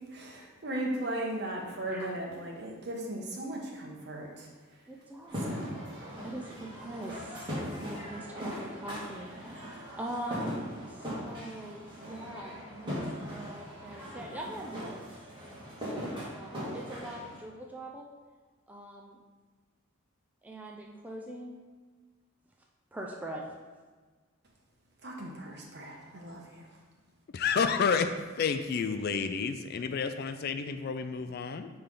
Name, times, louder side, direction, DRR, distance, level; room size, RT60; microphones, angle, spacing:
voice 1, 0.1-4.5 5.4-5.9 25.0-26.6, right 1 dB, 55° right, -1 dB, 1.2 m, -37 dB
voice 2, 3.0-3.6 4.9-5.6 6.2-7.5 7.9-10.6 10.9-15.0 15.8-18.1 18.7-19.2 20.4-21.6 22.9-23.4, right 1 dB, 5° right, -2 dB, 0.5 m, -42 dB
sound 1, 5.3-17.4, equal, 25° right, 1.9 m, -39 dB
voice 3, 27.3-28.1 28.4-31.7, left 6 dB, 50° left, 9 dB, 0.3 m, -30 dB
9.8 x 3.4 x 3.8 m, 1.4 s
head